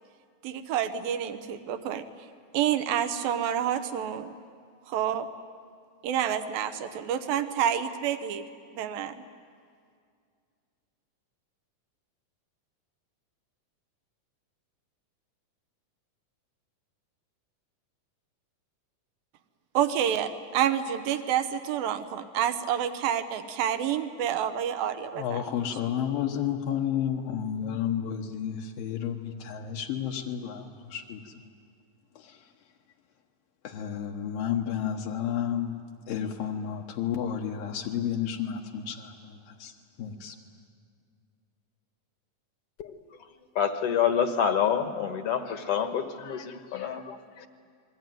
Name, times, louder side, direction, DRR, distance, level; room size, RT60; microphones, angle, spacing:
voice 1, 0.4-2.0 2.5-4.3 4.9-5.3 6.0-8.4 8.7-9.1 19.7-25.4, right 9 dB, 85° right, 10 dB, 2.9 m, -28 dB
voice 2, 25.2-31.2 33.6-35.8 36.1-39.1 39.6-39.7 40.0-40.3, left 9 dB, 80° left, 0 dB, 3.0 m, -31 dB
voice 3, 43.5-47.2 47.4-47.5, left 8 dB, 55° left, 7 dB, 1.8 m, -27 dB
29.5 x 22.0 x 9.3 m, 2.2 s
omnidirectional pair, 4.0 m